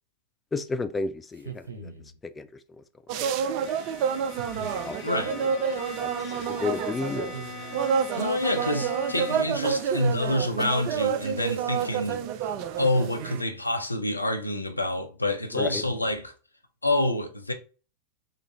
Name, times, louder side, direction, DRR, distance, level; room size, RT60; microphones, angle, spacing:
voice 1, 0.5-1.9 2.2-2.8 3.1-3.5 4.8-5.0 5.4-5.5 6.0-7.5 15.5-15.8, left 4 dB, 15° left, 0.4 m, -33 dB
sound 1, 1.3-2.2 4.3-5.0 7.1-7.9 10.0-10.9 12.7-13.7 15.5-16.3, right 5 dB, 75° right, 0.9 m, -40 dB
sound 2, 3.1-13.4, right 7 dB, 45° right, 0.4 m, -29 dB
Bowed string instrument, 3.2-9.7, left 4 dB, 40° left, 1.1 m, -41 dB
voice 2, 5.0-5.3 8.2-12.2 12.8-16.3 16.8-17.5, left 1 dB, 85° left, 0.6 m, -27 dB
3.8 x 3.4 x 3.1 m
figure-of-eight pair, 90°, 0 cm